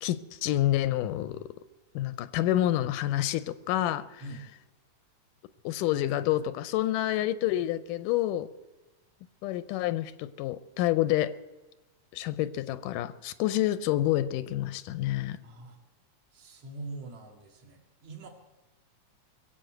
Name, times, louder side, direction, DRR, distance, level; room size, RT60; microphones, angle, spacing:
voice 1, 0.0-1.5 2.0-4.2 5.6-8.5 9.4-11.3 12.1-15.4, left 13 dB, 85° left, 2.2 m, -28 dB
voice 2, 15.4-15.8 16.3-18.3, right 2 dB, 50° right, 3.3 m, -43 dB
22.5 x 8.4 x 7.7 m
omnidirectional pair, 3.7 m